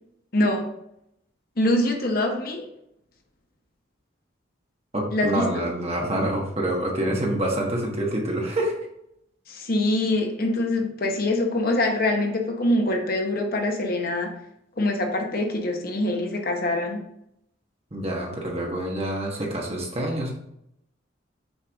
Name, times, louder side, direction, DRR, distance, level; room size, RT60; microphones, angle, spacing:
voice 1, 0.3-0.7 1.6-2.7 5.1-5.6 9.5-14.3 14.8-17.0, left 1 dB, 50° left, 2 dB, 1.0 m, -24 dB
voice 2, 4.9-8.9 17.9-20.3, right 1 dB, 30° right, -1 dB, 1.3 m, -27 dB
6.4 x 4.7 x 3.5 m, 0.78 s
head